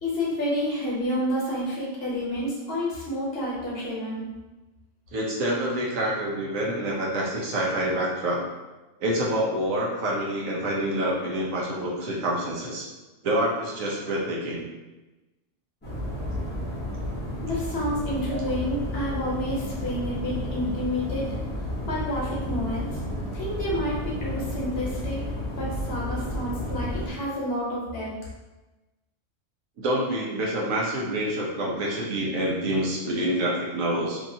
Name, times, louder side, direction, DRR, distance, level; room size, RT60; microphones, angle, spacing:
voice 1, 0.0-4.2 17.4-21.3 21.8-23.0 23.3-28.1, equal, 55° left, -5 dB, 1.1 m, -29 dB
voice 2, 5.1-8.4 9.0-12.9 13.2-14.7 29.8-34.2, right 1 dB, 90° right, -4 dB, 1.2 m, -27 dB
sound 1, 15.8-27.1, left 1 dB, 10° left, 0.6 m, -32 dB
2.9 x 2.7 x 2.6 m, 1.1 s
omnidirectional pair, 1.3 m